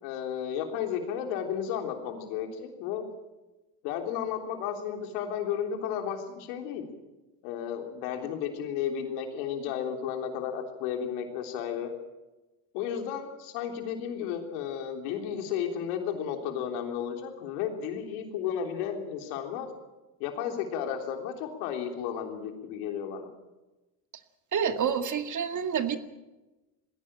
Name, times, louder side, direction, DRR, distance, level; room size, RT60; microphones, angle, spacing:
voice 1, 0.0-3.0 3.8-6.9 7.4-11.9 12.7-19.7 20.2-23.3, left 8 dB, 90° left, 4 dB, 3.6 m, -33 dB
voice 2, 24.5-26.0, right 7 dB, 40° right, 8 dB, 2.1 m, -28 dB
21.0 x 16.5 x 8.9 m, 1.1 s
supercardioid pair, 100°, 43 cm